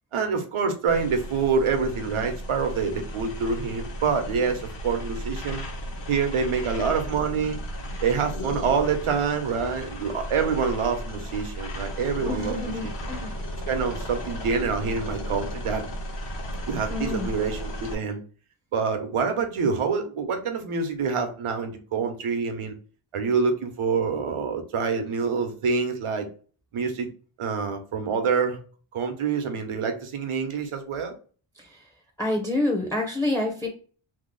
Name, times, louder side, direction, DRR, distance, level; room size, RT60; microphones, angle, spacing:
voice 1, 0.1-5.7 6.1-7.6 8.0-12.6 12.8-12.9 13.7-15.8 16.7-18.2 18.7-22.7 23.1-26.3 26.7-27.1 27.4-28.6 28.9-31.1, right 5 dB, 85° right, 5 dB, 0.8 m, -26 dB
sound 1, 0.9-17.9, equal, 60° left, 0.9 m, -35 dB
voice 2, 12.3-13.4 16.9-17.3 31.6-31.9 32.2-33.7, left 2 dB, 5° left, 1 dB, 0.5 m, -28 dB
2.9 x 2.0 x 3.7 m, 0.40 s
wide cardioid pair, 155°, 49 cm